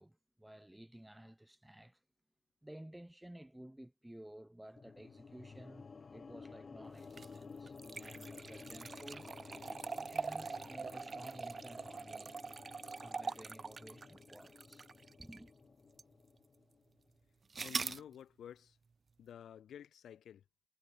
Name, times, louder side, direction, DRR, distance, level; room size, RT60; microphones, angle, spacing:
voice 1, 0.0-2.0 2.6-9.3 9.9-12.4 13.0-14.9 15.2-15.5, right 1 dB, 5° right, 3.4 m, -54 dB
sound 1, 4.8-17.0, left 5 dB, 35° left, 0.6 m, -54 dB
sound 2, 7.0-15.5 16.0-16.1 17.5-18.0, right 4 dB, 30° right, 1.4 m, -43 dB
voice 2, 17.6-18.8 19.2-20.4, left 9 dB, 85° left, 1.3 m, -52 dB
wide cardioid pair, 165°, 0 cm